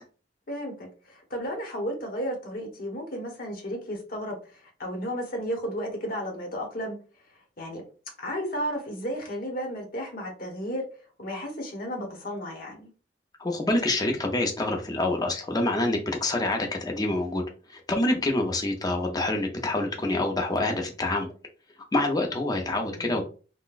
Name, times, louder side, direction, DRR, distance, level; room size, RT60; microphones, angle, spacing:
voice 1, 0.5-7.0 7.6-7.8 8.2-10.8 11.2-12.9 22.7-23.2, equal, 50° left, 1 dB, 1.1 m, -33 dB
voice 2, 13.4-17.4 17.7-21.3 21.9-23.2, left 2 dB, 20° left, 2 dB, 0.6 m, -26 dB
3.8 x 2.2 x 2.4 m, 0.36 s
head